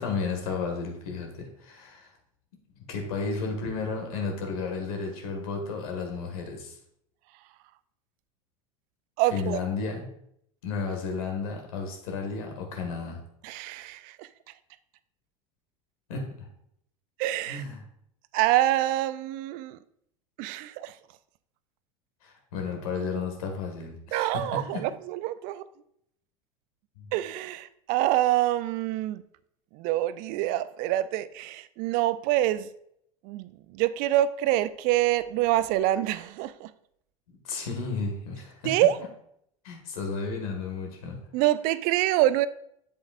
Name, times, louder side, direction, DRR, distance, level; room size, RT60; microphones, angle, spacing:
voice 1, 0.0-2.1 2.8-6.8 9.3-10.1 10.6-13.2 16.1-16.5 17.5-17.8 22.2-24.9 27.0-27.1 37.3-38.8 39.6-41.2, left 4 dB, 75° left, 2 dB, 1.8 m, -33 dB
voice 2, 9.2-9.6 13.4-14.3 17.2-17.6 18.3-19.8 20.4-21.0 24.1-25.6 27.1-29.2 29.7-32.7 33.2-36.7 38.6-39.0 41.3-42.5, right 14 dB, 50° right, 15 dB, 0.4 m, -26 dB
7.7 x 7.4 x 2.5 m, 0.73 s
hypercardioid pair, 85°, 19 cm